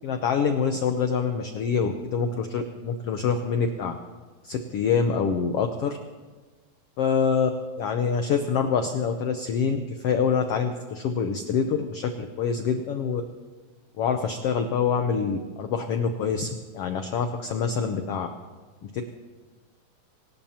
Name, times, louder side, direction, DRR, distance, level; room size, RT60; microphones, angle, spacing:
voice 1, 0.0-3.9 4.4-6.0 7.0-7.5 7.8-13.2 14.0-18.3 18.8-19.0, left 6 dB, 85° left, 6 dB, 1.3 m, -26 dB
23.5 x 19.0 x 2.9 m, 1.3 s
omnidirectional pair, 3.8 m